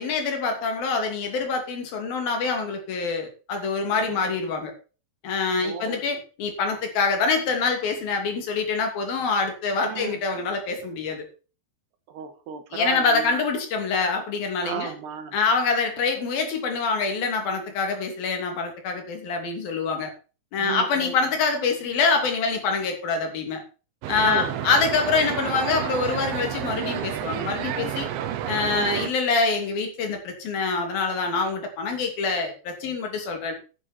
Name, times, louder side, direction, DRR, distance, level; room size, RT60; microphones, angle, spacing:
voice 1, 0.0-4.7 5.2-11.3 12.7-14.9 15.3-20.1 20.5-23.6 24.1-28.1 28.5-33.5, left 4 dB, 55° left, 4 dB, 4.4 m, -25 dB
voice 2, 5.6-6.0 9.8-10.2 12.1-13.5 14.6-15.4 20.6-21.2 24.2-24.7 28.7-29.1, right 8 dB, 70° right, 8 dB, 3.4 m, -34 dB
sound 1, 24.0-29.1, right 10 dB, 85° right, 3.6 m, -30 dB
11.0 x 10.5 x 4.3 m, 0.34 s
omnidirectional pair, 5.2 m